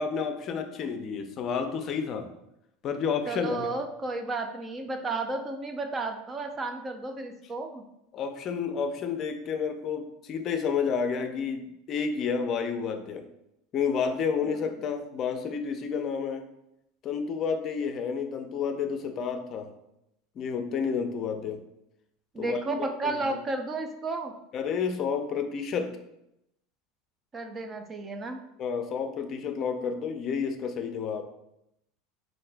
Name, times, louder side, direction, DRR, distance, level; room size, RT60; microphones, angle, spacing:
voice 1, 0.0-2.3 2.8-3.7 8.1-13.3 13.7-16.4 17.0-19.7 20.4-21.6 22.4-23.4 24.5-25.9 28.6-31.2, left 6 dB, 40° left, 6 dB, 0.5 m, -30 dB
voice 2, 3.3-7.8 14.4-14.6 22.3-24.3 27.3-28.4, right 3 dB, 25° right, 5 dB, 0.4 m, -33 dB
3.7 x 2.6 x 3.3 m, 0.83 s
supercardioid pair, 125°, 0 cm